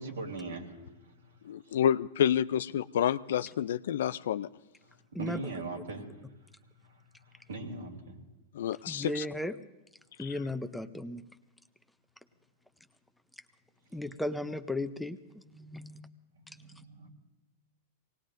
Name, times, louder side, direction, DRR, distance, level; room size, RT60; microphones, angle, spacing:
voice 1, 0.0-1.3 5.2-6.1 6.8-7.0 7.2-8.2 15.5-15.9 16.3-17.1, right 3 dB, 85° right, 3.4 m, -41 dB
voice 2, 1.4-4.5 8.5-9.3 10.2-10.3, left 9 dB, 70° left, 0.5 m, -29 dB
voice 3, 8.9-9.6 10.2-11.3 13.9-15.2 15.6-16.0, left 1 dB, 5° left, 0.7 m, -35 dB
24.5 x 19.0 x 2.6 m
hypercardioid pair, 110°, 0 cm